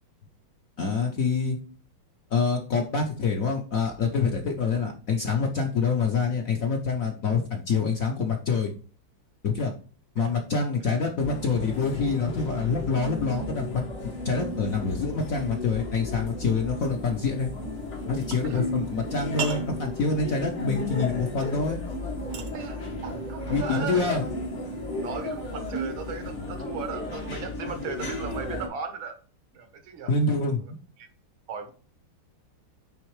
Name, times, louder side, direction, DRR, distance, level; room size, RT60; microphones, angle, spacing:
voice 1, 0.8-1.6 2.3-8.7 9.4-9.7 10.1-17.5 18.1-21.8 23.5-24.2 30.1-30.8, left 4 dB, 60° left, 2 dB, 0.9 m, -26 dB
sound 1, 11.2-28.7, left 1 dB, 85° left, 2.6 m, -34 dB
sound 2, 16.8-26.3, right 7 dB, 60° right, 1.0 m, -45 dB
voice 2, 22.5-24.2 25.0-29.2 29.5-30.1 31.0-31.1 31.5-31.7, right 5 dB, 75° right, 7 dB, 1.8 m, -36 dB
9.0 x 3.5 x 3.2 m, 0.39 s
omnidirectional pair, 2.2 m